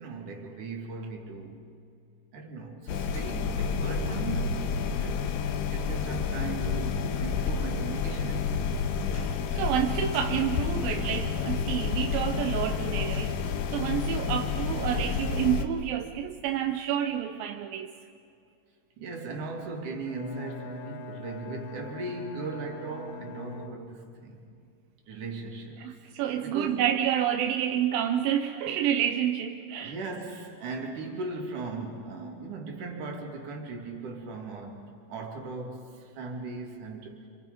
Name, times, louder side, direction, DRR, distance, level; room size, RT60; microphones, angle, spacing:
voice 1, 0.0-1.6 2.3-8.9 9.4-9.9 19.0-24.5 25.1-25.9 26.4-26.9 29.8-37.2, right 3 dB, 60° right, 3.9 m, -38 dB
sound 1, 2.9-15.6, left 6 dB, 80° left, 2.8 m, -29 dB
voice 2, 9.1-13.4 13.7-17.9 25.8-29.9, right 10 dB, 85° right, 2.6 m, -29 dB
Bowed string instrument, 20.0-24.3, left 2 dB, 60° left, 2.4 m, -42 dB
28.0 x 28.0 x 5.3 m
omnidirectional pair, 4.1 m